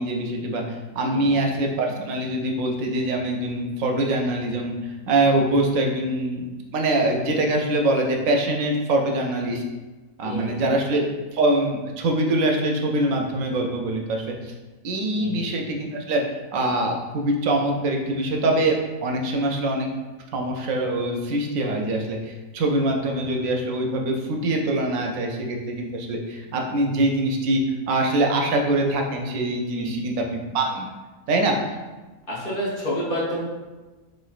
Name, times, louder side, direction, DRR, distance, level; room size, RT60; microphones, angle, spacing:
voice 1, 0.0-9.6 10.2-14.5 14.8-16.2 16.5-19.9 20.3-27.6 27.9-30.9 31.3-31.6, right 1 dB, 75° right, 2 dB, 0.9 m, -24 dB
voice 2, 10.2-10.7 15.1-15.5 29.7-30.0 32.3-33.4, equal, 45° left, -7 dB, 1.0 m, -29 dB
4.2 x 3.1 x 2.4 m, 1.2 s
omnidirectional pair, 1.5 m